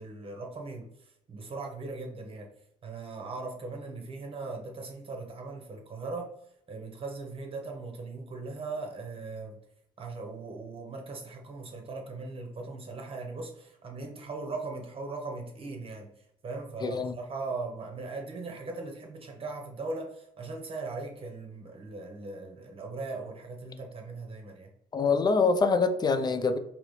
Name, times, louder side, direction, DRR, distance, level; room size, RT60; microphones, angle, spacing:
voice 1, 0.0-2.5 2.8-6.3 6.7-9.6 10.0-16.1 16.4-24.7, right 3 dB, 35° right, 2 dB, 0.9 m, -39 dB
voice 2, 16.8-17.2 24.9-26.6, left 4 dB, 25° left, 9 dB, 0.4 m, -25 dB
4.0 x 2.8 x 3.1 m, 0.78 s
cardioid pair, 110°, 17 cm